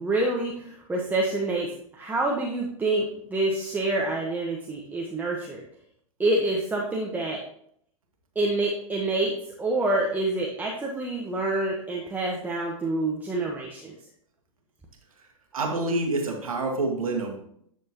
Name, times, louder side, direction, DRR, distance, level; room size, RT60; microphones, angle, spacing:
voice 1, 0.0-5.6 6.2-7.4 8.3-13.9, right 2 dB, 10° right, -2 dB, 1.2 m, -27 dB
voice 2, 15.5-17.4, right 2 dB, 75° right, 2 dB, 2.0 m, -27 dB
10.0 x 6.6 x 3.0 m, 0.67 s
figure-of-eight pair, 105°, 18 cm